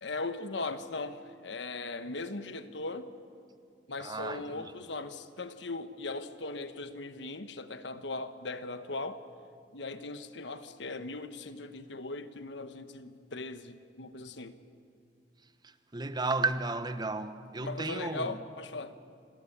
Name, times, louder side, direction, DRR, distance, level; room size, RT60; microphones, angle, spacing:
voice 1, 0.0-3.1 3.9-9.2 9.7-14.5 17.6-18.9, left 3 dB, 70° left, 1.2 m, -39 dB
voice 2, 4.0-4.8 15.6-18.4, right 3 dB, 25° right, 0.9 m, -34 dB
27.5 x 15.5 x 9.9 m
head